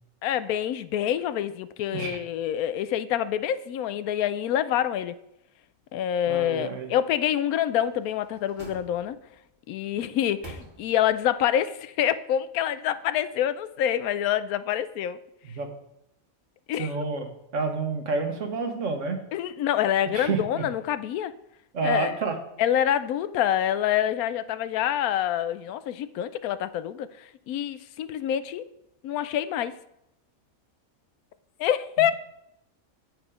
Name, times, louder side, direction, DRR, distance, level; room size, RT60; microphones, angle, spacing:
voice 1, 0.2-5.2 5.9-9.2 9.7-15.2 16.7-16.9 19.3-21.3 21.8-22.1 22.6-28.7 29.0-29.7 31.6-32.1, left 10 dB, 90° left, 1.1 m, -26 dB
voice 2, 6.3-6.9 15.4-15.7 16.8-19.2 20.1-20.6 21.7-22.4, right 4 dB, 60° right, 1.5 m, -29 dB
sound 1, 7.7-9.4 9.9-11.2 11.6-11.7, right 3 dB, 35° right, 1.5 m, -48 dB
8.2 x 7.8 x 4.9 m
omnidirectional pair, 1.5 m